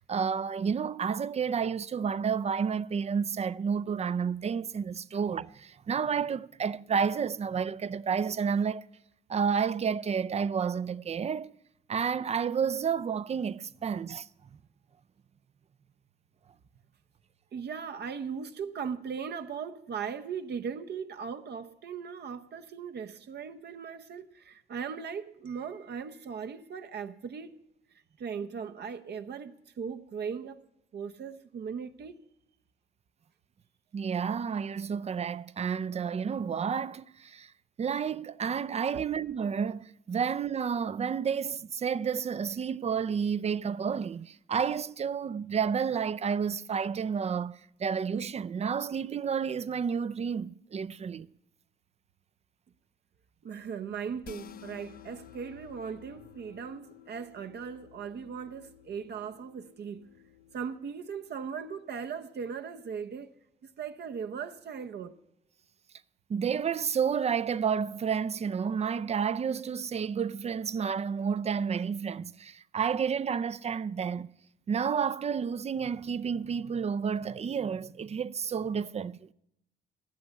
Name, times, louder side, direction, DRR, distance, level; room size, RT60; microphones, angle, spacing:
voice 1, 0.0-8.9 9.3-11.5 11.9-14.3 33.9-37.5 37.8-51.3 66.3-74.3 74.7-79.3, right 6 dB, 30° right, 0.5 m, -30 dB
voice 2, 17.5-27.5 28.2-30.6 30.9-32.2 38.9-39.0 53.4-60.0 60.5-63.3 63.8-65.2, right 6 dB, 55° right, 0.9 m, -38 dB
sound 1, 54.2-60.7, left 10 dB, 50° left, 0.5 m, -52 dB
15.5 x 6.9 x 9.9 m
cardioid pair, 90°, 20 cm